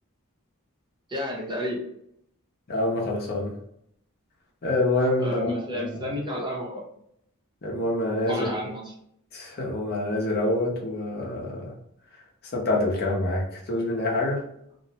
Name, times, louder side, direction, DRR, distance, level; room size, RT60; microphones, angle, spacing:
voice 1, 1.1-1.8 5.2-6.8 8.3-8.8, left 1 dB, 20° right, -3 dB, 0.6 m, -31 dB
voice 2, 2.7-3.5 4.6-6.1 7.6-8.5 9.3-11.7 12.5-14.4, left 2 dB, 45° left, -2 dB, 0.6 m, -26 dB
2.5 x 2.0 x 2.7 m, 0.73 s
head